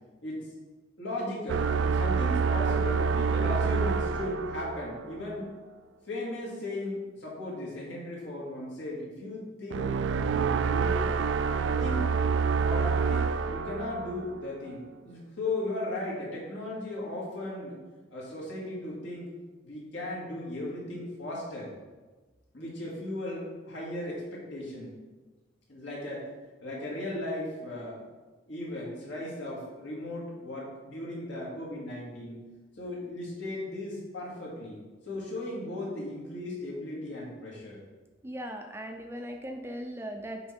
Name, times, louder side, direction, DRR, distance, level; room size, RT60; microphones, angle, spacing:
voice 1, 1.0-5.5 6.1-10.0 10.3-11.0 11.6-12.1 12.6-17.8 18.1-19.3 19.6-21.7 22.5-24.9 25.7-26.3 26.6-28.0 28.5-32.4 32.8-34.8 35.1-37.8, left 1 dB, 75° left, -5 dB, 2.3 m, -36 dB
sound 1, 1.5-5.2 9.7-14.5, right 5 dB, 80° right, 0.3 m, -27 dB
voice 2, 38.2-40.4, equal, 15° right, 4 dB, 0.4 m, -38 dB
6.7 x 4.7 x 4.4 m, 1.3 s
head